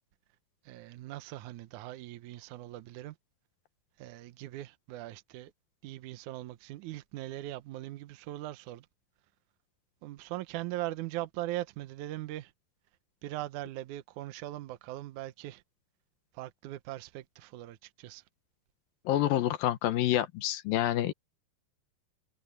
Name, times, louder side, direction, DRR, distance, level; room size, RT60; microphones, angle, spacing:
voice 1, 0.7-3.2 4.0-5.5 5.8-8.9 10.0-12.5 13.2-15.6 16.3-18.2, right 15 dB, 80° right, 1.7 m, -40 dB
voice 2, 19.1-21.1, left 13 dB, 70° left, 2.5 m, -28 dB
omnidirectional pair, 4.7 m